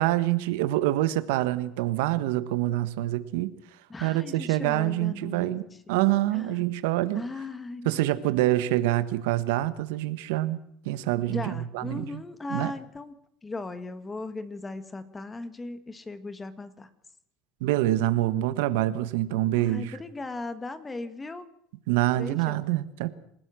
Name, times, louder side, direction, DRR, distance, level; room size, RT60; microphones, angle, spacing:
voice 1, 0.0-3.5 4.0-5.6 5.9-7.2 7.8-10.6 10.8-12.0 12.5-12.7 17.6-19.9 21.9-23.1, right 15 dB, 85° right, 1.4 m, -26 dB
voice 2, 3.9-5.5 5.9-6.0 6.3-6.6 7.1-8.0 8.4-8.5 11.3-16.9 19.5-21.4 22.2-22.7, left 2 dB, 15° left, 1.5 m, -38 dB
27.0 x 16.5 x 6.3 m
cardioid pair, 140°, 0 cm